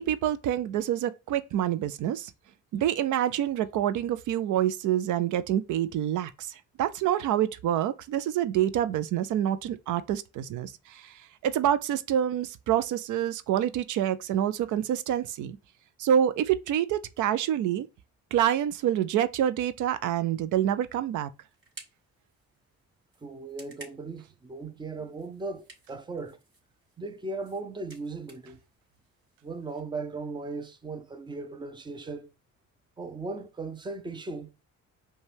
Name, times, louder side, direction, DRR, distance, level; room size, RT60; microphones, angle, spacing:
voice 1, 0.0-2.3 2.7-15.6 16.0-17.9 18.3-21.3, right 10 dB, 75° right, 0.5 m, -27 dB
sound 1, 20.6-29.8, right 3 dB, 40° right, 2.5 m, -55 dB
voice 2, 23.2-26.4 27.0-28.6 29.4-32.3 33.0-34.5, right 3 dB, 15° right, 0.6 m, -37 dB
5.2 x 2.3 x 3.3 m
cardioid pair, 90°, 30 cm